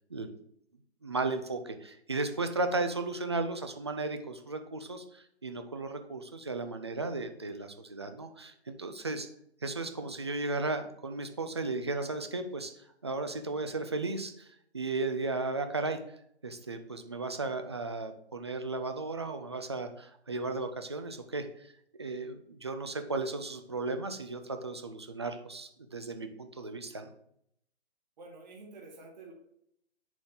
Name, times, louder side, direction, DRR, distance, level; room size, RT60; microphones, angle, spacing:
voice 1, 1.0-9.3 9.6-16.0 16.4-21.7 22.0-27.1, right 3 dB, 25° right, 6 dB, 0.4 m, -35 dB
voice 2, 28.2-29.3, right 3 dB, 40° right, 0 dB, 1.6 m, -49 dB
7.0 x 4.1 x 3.7 m, 0.71 s
figure-of-eight pair, 140°, 33 cm